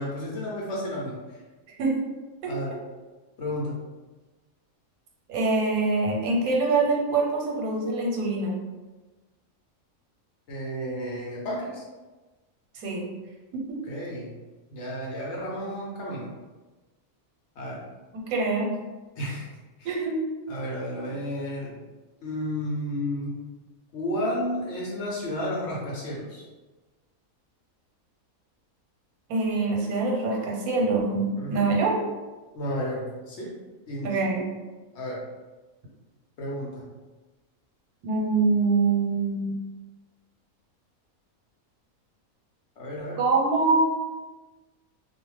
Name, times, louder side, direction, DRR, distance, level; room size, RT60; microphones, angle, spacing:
voice 1, 0.0-1.4 2.5-2.7 3.4-3.8 10.5-11.9 13.9-14.4 14.7-16.3 17.6-17.8 19.2-19.5 19.8-20.0 20.5-21.8 22.2-23.4 23.9-26.5 31.4-31.7 32.5-33.5 33.9-34.2 34.9-35.2 36.4-36.9 42.8-43.2, equal, 60° left, -4 dB, 0.8 m, -32 dB
voice 2, 1.7-2.0 2.4-2.5 5.3-8.6 12.7-13.1 13.5-13.8 18.1-18.7 19.8-20.2 29.3-31.9 34.0-34.5 38.0-39.6 43.2-43.8, right 3 dB, 85° right, -2 dB, 1.1 m, -24 dB
2.4 x 2.1 x 3.1 m, 1.2 s
omnidirectional pair, 1.5 m